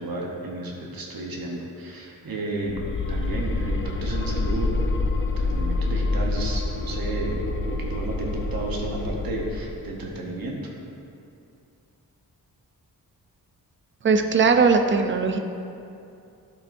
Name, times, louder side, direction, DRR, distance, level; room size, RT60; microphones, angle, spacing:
voice 1, 0.0-2.8 3.1-7.4 7.8-10.6, right 2 dB, 70° right, -1 dB, 1.0 m, -33 dB
sound 1, 2.7-9.9, left 2 dB, 35° left, 0.4 m, -27 dB
voice 2, 14.0-15.4, right 4 dB, 35° right, 7 dB, 0.4 m, -19 dB
11.5 x 5.4 x 2.6 m, 2.6 s
wide cardioid pair, 155°, 37 cm